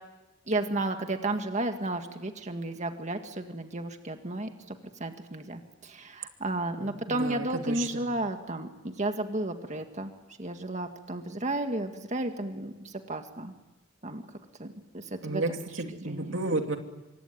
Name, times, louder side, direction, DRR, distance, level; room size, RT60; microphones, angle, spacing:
voice 1, 0.5-10.1 10.4-13.5 14.0-14.2 14.6-15.6 16.0-16.3, right 2 dB, 40° right, 5 dB, 1.9 m, -33 dB
voice 2, 6.8-8.0 15.2-16.8, right 2 dB, 80° right, 5 dB, 2.5 m, -32 dB
26.0 x 24.0 x 9.3 m, 1.1 s
head